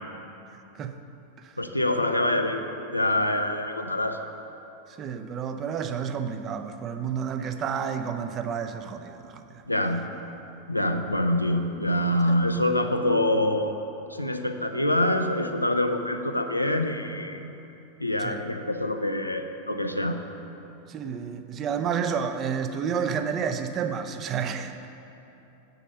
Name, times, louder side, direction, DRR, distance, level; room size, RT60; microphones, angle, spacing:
voice 1, 1.6-2.7 2.9-4.2 9.7-10.1 10.7-13.7 14.1-17.5 18.0-20.2, left 1 dB, 85° left, 6 dB, 0.5 m, -25 dB
voice 2, 5.0-9.6 12.3-12.4 18.2-18.4 20.9-24.9, right 7 dB, 30° right, 8 dB, 0.5 m, -30 dB
7.5 x 6.6 x 6.5 m, 2.9 s
figure-of-eight pair, 90°, 0 cm